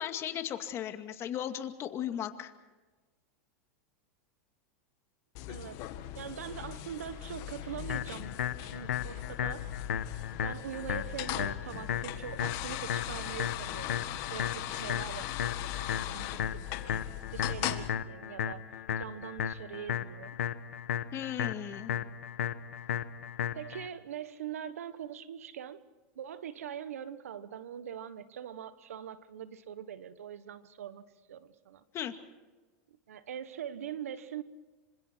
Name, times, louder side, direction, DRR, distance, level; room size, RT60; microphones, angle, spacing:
voice 1, 0.0-2.5 21.1-21.9 31.9-32.1, left 10 dB, 35° left, 7 dB, 2.1 m, -36 dB
sound 1, 5.3-17.9, left 13 dB, 50° left, 1.8 m, -39 dB
voice 2, 5.5-8.4 8.7-9.7 10.3-17.0 17.3-18.7 19.0-20.4 23.5-25.8 26.1-31.8 32.9-34.4, right 9 dB, 90° right, 13 dB, 1.4 m, -43 dB
sound 2, 7.9-23.9, left 9 dB, 90° left, 1.1 m, -35 dB
27.5 x 25.5 x 4.6 m, 1.2 s
hypercardioid pair, 120°, 8 cm